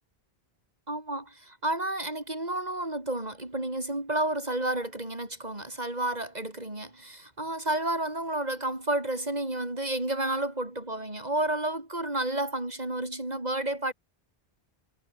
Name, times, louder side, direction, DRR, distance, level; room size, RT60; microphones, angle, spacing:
voice 1, 0.9-13.9, right 1 dB, 40° right, 4.6 m, -31 dB
omnidirectional pair, 1.0 m